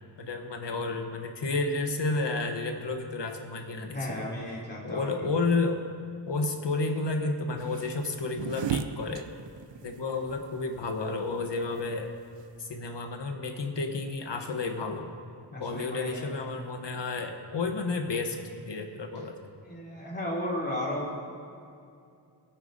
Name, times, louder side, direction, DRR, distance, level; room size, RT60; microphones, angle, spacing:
voice 1, 0.2-4.3 4.8-5.8 6.3-9.3 9.8-12.1 12.6-15.1 15.6-18.4 18.7-19.5, left 3 dB, 75° left, 4 dB, 1.1 m, -31 dB
voice 2, 3.8-5.3 15.4-16.3 19.6-21.1, left 1 dB, 25° left, -5 dB, 2.8 m, -34 dB
sound 1, 7.6-12.7, right 9 dB, 85° right, 0.5 m, -37 dB
20.0 x 8.9 x 2.7 m, 2.5 s
wide cardioid pair, 80°, 43 cm